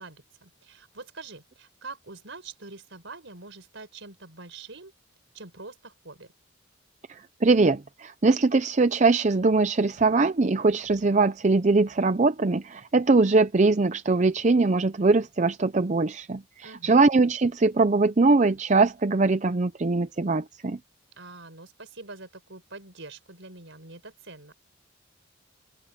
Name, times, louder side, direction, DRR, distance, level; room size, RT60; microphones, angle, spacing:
voice 1, 0.0-4.9 5.3-6.3 16.6-17.0 21.2-24.5, right 3 dB, 70° right, 5.0 m, -44 dB
voice 2, 7.1-20.8, right 3 dB, 35° right, 0.5 m, -22 dB
open air
head